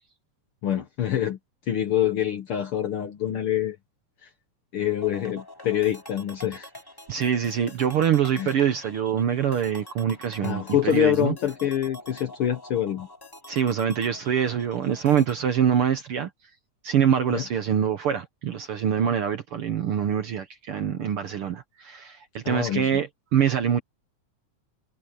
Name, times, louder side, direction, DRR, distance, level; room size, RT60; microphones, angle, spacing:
voice 1, 0.6-1.4 1.7-3.8 4.2-4.3 4.7-6.7 8.3-8.5 10.4-13.1 17.3-17.4 22.4-23.0, left 11 dB, 65° left, 1.5 m, -26 dB
sound 1, 5.0-15.3, left 1 dB, 10° left, 2.3 m, -46 dB
voice 2, 7.1-11.3 13.5-16.3 16.8-23.8, right 8 dB, 60° right, 1.5 m, -24 dB
omnidirectional pair, 3.5 m